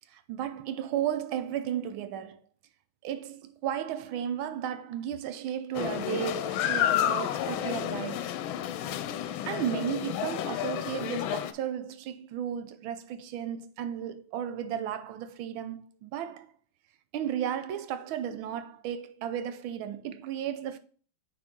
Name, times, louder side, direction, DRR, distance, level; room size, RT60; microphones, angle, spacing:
voice 1, 0.1-2.4 3.0-8.4 9.4-16.5 17.1-20.8, right 10 dB, 90° right, 1.5 m, -34 dB
sound 1, 5.7-11.5, left 11 dB, 90° left, 1.4 m, -30 dB
8.8 x 4.1 x 3.7 m
omnidirectional pair, 2.1 m